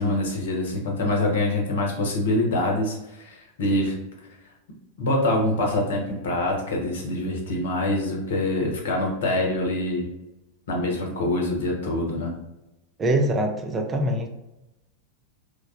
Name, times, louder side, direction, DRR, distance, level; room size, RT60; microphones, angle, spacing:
voice 1, 0.0-4.0 5.0-10.1 10.7-12.3, left 1 dB, 60° left, 0 dB, 0.7 m, -25 dB
voice 2, 13.0-14.3, right 1 dB, 20° right, 3 dB, 0.4 m, -23 dB
3.1 x 2.3 x 2.4 m, 0.95 s
figure-of-eight pair, 90°, 0 cm